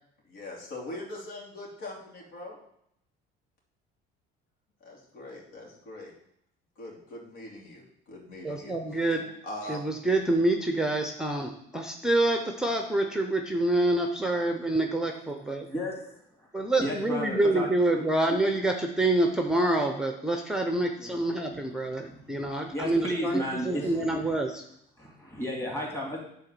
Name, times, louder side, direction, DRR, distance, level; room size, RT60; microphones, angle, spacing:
voice 1, 0.3-2.6 4.8-6.1 6.8-9.0 9.4-9.9, left 1 dB, 80° left, -2 dB, 2.8 m, -42 dB
voice 2, 8.4-9.4 9.7-15.7 16.5-24.6, right 2 dB, 5° right, 4 dB, 0.6 m, -27 dB
voice 3, 15.6-16.5 16.8-17.7 17.9-18.0 18.3-18.4 21.0-21.2 22.0-24.2 25.0-26.2, equal, 10° left, -2 dB, 2.5 m, -34 dB
8.8 x 3.9 x 6.7 m, 0.73 s
cardioid pair, 140°, 20 cm